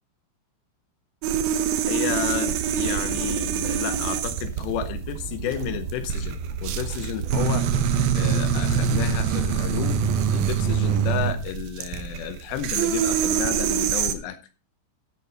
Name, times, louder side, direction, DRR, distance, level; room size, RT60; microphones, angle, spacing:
sound 1, 1.2-14.1, right 8 dB, 85° right, 2.0 m, -25 dB
voice 1, 1.9-7.7 8.1-10.0 10.3-14.4, left 10 dB, 75° left, 9 dB, 2.7 m, -31 dB
sound 2, 2.1-9.5, right 5 dB, 40° right, 1.9 m, -35 dB
13.5 x 8.7 x 4.1 m, 0.33 s
omnidirectional pair, 5.7 m